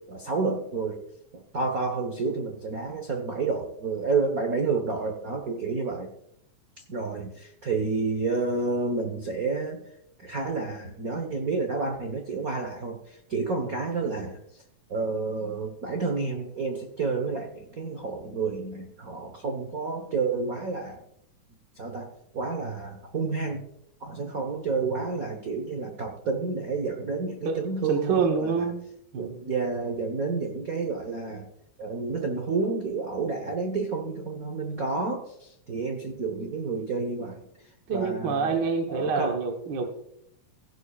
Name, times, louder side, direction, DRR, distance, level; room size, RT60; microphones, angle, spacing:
voice 1, 0.1-1.0 1.3-6.1 6.9-9.8 10.2-14.6 14.9-21.0 21.7-23.7 24.0-28.7 29.1-31.5 31.8-37.4 37.9-39.4, right 4 dB, 80° right, 4 dB, 0.7 m, -30 dB
voice 2, 27.4-28.8 29.1-29.5 37.9-39.9, right 5 dB, 55° right, 3 dB, 1.2 m, -27 dB
16.0 x 11.5 x 2.4 m, 0.76 s
omnidirectional pair, 3.5 m